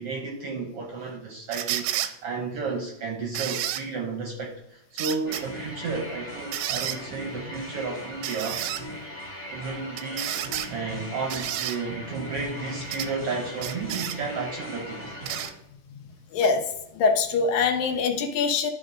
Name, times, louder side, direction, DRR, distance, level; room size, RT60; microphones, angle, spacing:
voice 1, 0.0-8.6 9.5-10.4 10.7-15.2, right 4 dB, 70° right, 0 dB, 1.4 m, -33 dB
sound 1, 1.5-2.1 3.4-3.8 5.0-5.4 6.5-7.0 8.2-8.8 10.0-10.7 11.3-11.8 12.9-13.1 13.6-14.2 15.3-15.5 16.4-16.5, right 12 dB, 85° right, 2.1 m, -30 dB
sound 2, 5.3-15.5, equal, 10° left, 0.6 m, -39 dB
voice 2, 17.0-18.7, left 5 dB, 75° left, 5 dB, 2.2 m, -23 dB
12.0 x 4.3 x 3.7 m, 0.86 s
omnidirectional pair, 3.6 m